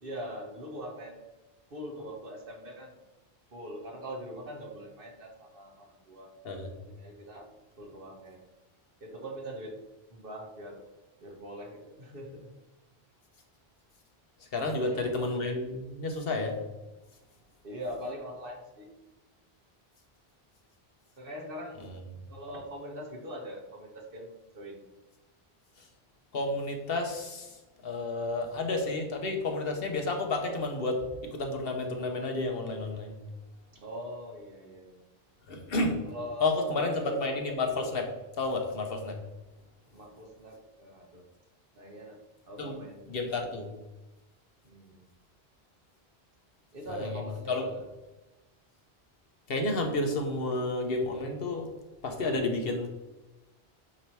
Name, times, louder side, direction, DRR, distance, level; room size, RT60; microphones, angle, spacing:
voice 1, 0.0-1.2 1.7-2.9 3.5-6.3 6.9-7.5 7.8-8.4 9.0-9.8 10.1-10.9 11.2-12.5 14.6-15.1 17.6-18.9 21.2-21.8 22.3-24.8 33.7-35.0 36.0-37.2 39.9-41.2 41.7-42.2 42.5-43.3 43.7-43.8 44.6-45.1 46.7-47.8, equal, 60° right, 0 dB, 1.5 m, -42 dB
voice 2, 14.5-16.6 26.3-27.6 27.8-33.1 35.5-36.0 36.4-38.1 38.4-39.2 42.6-42.8 43.1-43.7 46.9-47.1 47.5-47.6 49.5-51.7 52.0-52.9, left 2 dB, 65° left, 3 dB, 1.1 m, -31 dB
8.7 x 2.9 x 4.5 m, 1.1 s
omnidirectional pair, 1.1 m